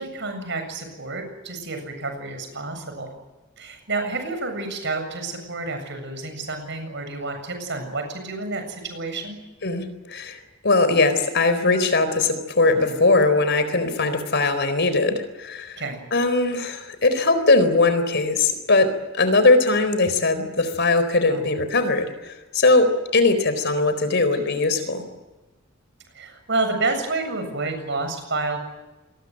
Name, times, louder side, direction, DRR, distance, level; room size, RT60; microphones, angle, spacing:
voice 1, 0.0-3.1 3.6-9.4 15.8-16.0 21.3-21.4 24.3-24.4 26.1-28.6, right 3 dB, 60° right, 6 dB, 7.6 m, -29 dB
voice 2, 9.6-15.8 16.1-18.9 19.1-22.9 23.1-25.0, left 3 dB, 55° left, 11 dB, 4.3 m, -20 dB
27.0 x 21.5 x 8.0 m, 1.1 s
head